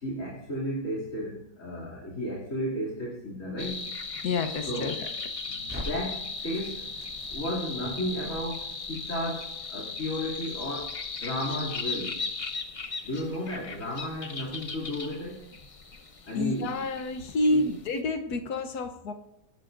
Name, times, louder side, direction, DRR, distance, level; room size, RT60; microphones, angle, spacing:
voice 1, 0.0-3.8 4.7-5.0 5.5-6.8 7.3-12.2 13.0-15.4 16.2-16.7 17.5-17.7, equal, 55° left, -4 dB, 3.2 m, -33 dB
sound 1, 3.6-18.0, left 4 dB, 35° left, 0.6 m, -37 dB
voice 2, 4.2-4.9 16.3-19.1, left 2 dB, 80° left, 7 dB, 1.5 m, -28 dB
Crackle, 5.7-11.8, equal, 10° right, 5.1 m, -46 dB
23.5 x 12.0 x 2.6 m, 0.83 s
omnidirectional pair, 1.6 m